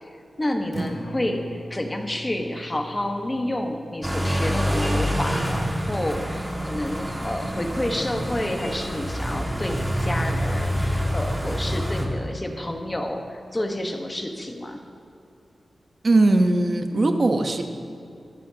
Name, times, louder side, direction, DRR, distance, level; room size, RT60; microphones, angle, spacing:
voice 1, 0.0-14.8, left 1 dB, 20° left, 3 dB, 1.4 m, -29 dB
Acoustic guitar, 0.7-8.8, equal, 45° left, 2.3 m, -43 dB
sound 1, 4.0-12.0, equal, 10° right, 2.0 m, -26 dB
voice 2, 16.0-17.6, right 2 dB, 45° right, 5 dB, 1.1 m, -19 dB
23.0 x 12.0 x 2.9 m, 2.7 s
wide cardioid pair, 115°, 0 cm